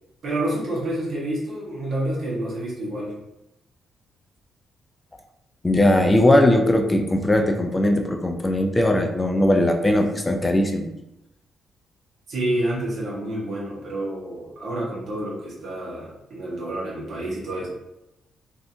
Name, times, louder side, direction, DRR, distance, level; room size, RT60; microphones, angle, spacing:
voice 1, 0.2-3.1 12.3-17.7, right 1 dB, 55° right, -6 dB, 1.3 m, -28 dB
voice 2, 5.6-10.9, left 1 dB, 15° left, 3 dB, 0.3 m, -19 dB
3.2 x 2.6 x 2.7 m, 0.88 s
cardioid pair, 125°, 0 cm